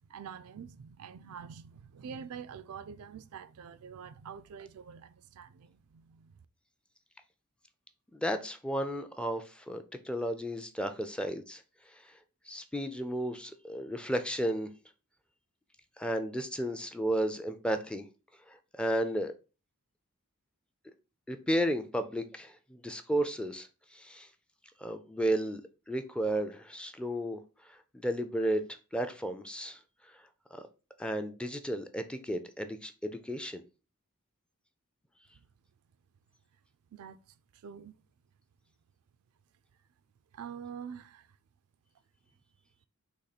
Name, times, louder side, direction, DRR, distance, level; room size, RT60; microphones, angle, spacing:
voice 1, 0.1-6.3 35.3-35.5 36.9-37.2 37.6-37.9 40.3-41.3, right 7 dB, 75° right, 0.4 m, -46 dB
voice 2, 8.1-11.6 12.5-14.7 16.0-18.1 18.8-19.3 21.3-23.7 23.9-24.3 24.8-25.6 25.9-27.4 27.9-28.6 28.9-29.8 30.5-30.6 31.0-33.6, right 1 dB, 5° left, 0.3 m, -33 dB
4.2 x 3.0 x 4.0 m
head